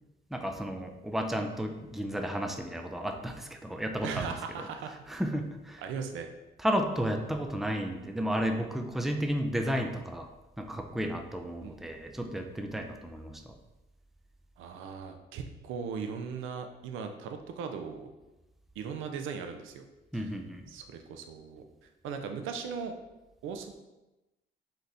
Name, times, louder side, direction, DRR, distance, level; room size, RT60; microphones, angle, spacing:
voice 1, 0.3-4.3 5.1-5.8 6.6-10.3 10.6-13.5 20.1-20.6, equal, ahead, 4 dB, 0.5 m, -33 dB
voice 2, 4.0-4.9 5.8-6.3 11.6-11.9 14.6-18.1 18.8-19.8 20.1-20.3 20.7-23.0 23.4-23.7, right 6 dB, 90° right, 6 dB, 0.5 m, -38 dB
4.0 x 4.0 x 3.4 m, 1.0 s
cardioid pair, 90°, 20 cm